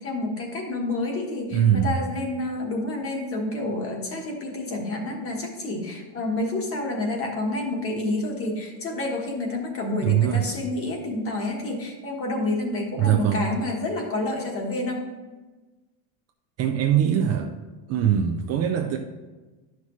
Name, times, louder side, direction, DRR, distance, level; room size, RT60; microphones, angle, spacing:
voice 1, 0.0-15.0, left 2 dB, 30° left, 1 dB, 1.4 m, -29 dB
voice 2, 1.5-2.0 10.0-10.5 13.0-13.4 16.6-17.6 17.9-19.0, right 9 dB, 35° right, 3 dB, 0.5 m, -22 dB
10.5 x 5.8 x 3.1 m, 1.2 s
cardioid pair, 145°, 44 cm